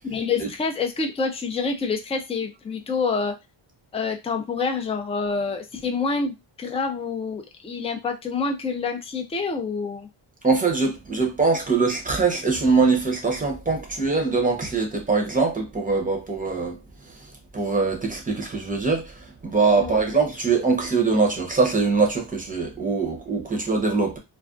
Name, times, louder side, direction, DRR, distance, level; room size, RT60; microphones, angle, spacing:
voice 1, 0.0-3.4 3.9-10.1 19.8-20.1, left 4 dB, 15° left, 0.3 m, -27 dB
voice 2, 10.4-16.8 17.5-19.1 19.4-24.2, right 4 dB, 15° right, 0.7 m, -22 dB
2.4 x 2.2 x 2.4 m
cardioid pair, 110°, 48 cm